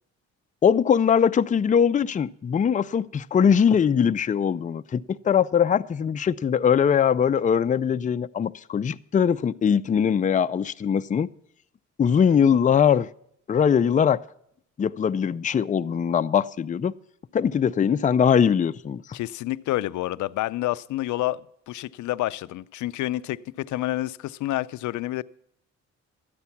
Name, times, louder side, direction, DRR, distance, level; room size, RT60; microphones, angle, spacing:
voice 1, 0.6-11.3 12.0-13.1 13.5-14.2 14.8-16.9 17.3-19.0, left 7 dB, 25° left, 0.4 m, -21 dB
voice 2, 19.1-25.2, left 16 dB, 75° left, 0.5 m, -29 dB
13.0 x 9.6 x 5.8 m
cardioid pair, 90°, 30 cm